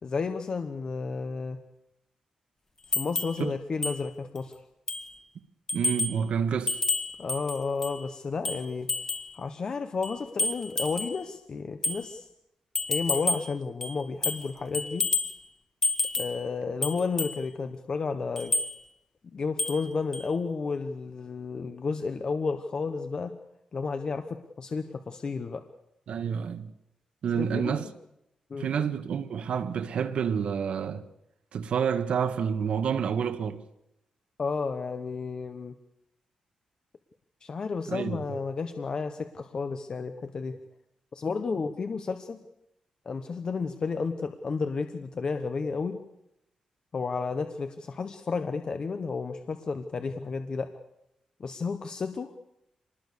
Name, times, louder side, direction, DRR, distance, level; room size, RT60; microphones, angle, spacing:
voice 1, 0.0-1.6 2.9-4.6 7.2-8.9 9.3-12.3 12.9-15.1 16.2-18.6 19.3-23.4 23.7-25.6 27.4-27.9 28.5-28.7 34.4-35.8 37.4-40.6 41.1-42.4 43.0-46.0 46.9-50.7 51.4-52.3, left 4 dB, 40° left, 1.2 m, -32 dB
sound 1, 2.9-3.4 3.8-4.0 4.4-4.5 4.9-5.1 5.7-6.2 6.7-8.0 8.4-9.3 10.0-11.2 11.8-12.0 12.7-13.5 13.8-14.5 14.7-15.4 15.8-16.4 16.8-17.4 18.4-18.7 19.6-19.9 20.1-20.3, left 2 dB, 20° left, 2.1 m, -29 dB
voice 2, 5.7-6.8 26.1-26.7 27.2-27.8 28.6-31.0 31.5-33.6 37.9-38.4, right 7 dB, 70° right, 1.5 m, -29 dB
26.5 x 20.5 x 6.8 m
wide cardioid pair, 135°, 2 cm